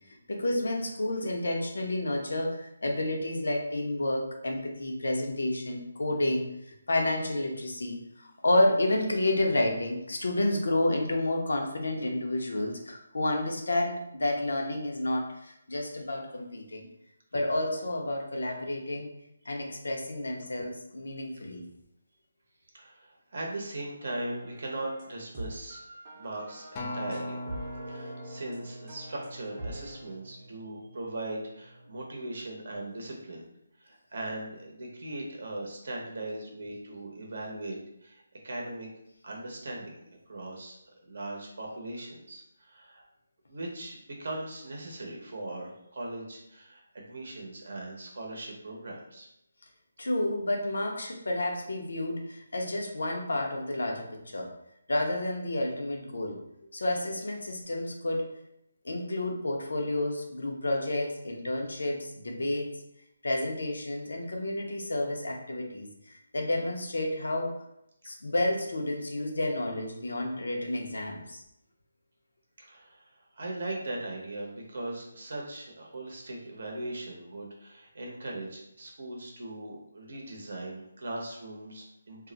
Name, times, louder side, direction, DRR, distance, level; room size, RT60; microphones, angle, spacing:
voice 1, 0.3-16.9 17.3-19.1 19.5-21.7 50.0-54.5 54.9-56.4 56.7-58.2 58.8-62.8 63.2-67.5 68.1-71.4, left 1 dB, 85° left, 2 dB, 0.7 m, -30 dB
voice 2, 22.7-25.8 26.1-27.4 27.9-33.4 33.8-38.9 39.2-40.8 41.0-43.0 43.5-49.3 72.6-82.3, right 2 dB, 60° right, -1 dB, 0.7 m, -39 dB
sound 1, 24.0-30.0, right 1 dB, 20° right, 0.7 m, -44 dB
Acoustic guitar, 26.8-31.2 31.8-32.0, left 1 dB, 20° left, 0.3 m, -41 dB
2.4 x 2.0 x 3.8 m, 0.78 s
hypercardioid pair, 170°, 0 cm